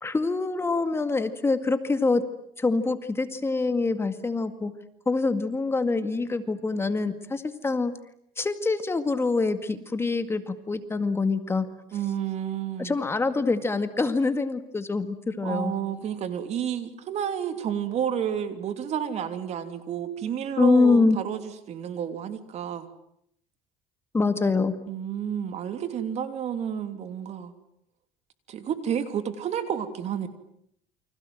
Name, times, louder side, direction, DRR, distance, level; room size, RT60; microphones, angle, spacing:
voice 1, 0.0-2.2 2.6-4.7 5.1-7.9 8.4-11.7 12.8-15.7 20.6-21.2 24.1-24.8, left 3 dB, 15° left, 9 dB, 2.0 m, -25 dB
voice 2, 11.9-13.0 15.4-22.9 24.9-27.5 28.5-30.3, right 9 dB, 50° right, 9 dB, 3.1 m, -30 dB
29.0 x 25.5 x 7.8 m, 0.73 s
cardioid pair, 125°, 15 cm